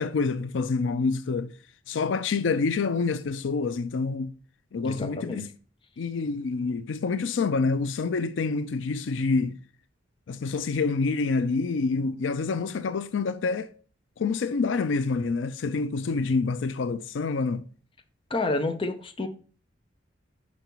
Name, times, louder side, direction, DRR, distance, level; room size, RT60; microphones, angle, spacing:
voice 1, 0.0-1.5 1.9-4.3 4.7-5.5 6.0-9.6 10.3-13.7 14.2-17.6, left 4 dB, 85° left, 0.4 m, -27 dB
voice 2, 4.8-5.4 18.3-19.3, left 2 dB, 30° left, 0.7 m, -29 dB
5.8 x 5.3 x 4.5 m
head